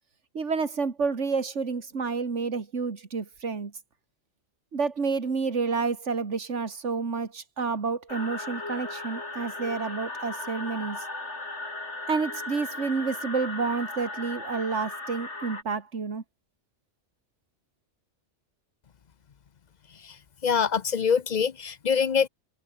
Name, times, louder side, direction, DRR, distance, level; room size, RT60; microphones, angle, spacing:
voice 1, 0.3-3.7 4.7-11.0 12.1-16.2, right 4 dB, 85° right, 2.4 m, -29 dB
sound 1, 8.1-15.6, left 2 dB, 75° left, 4.6 m, -37 dB
voice 2, 20.4-22.3, left 6 dB, 45° left, 0.7 m, -24 dB
omnidirectional pair, 1.2 m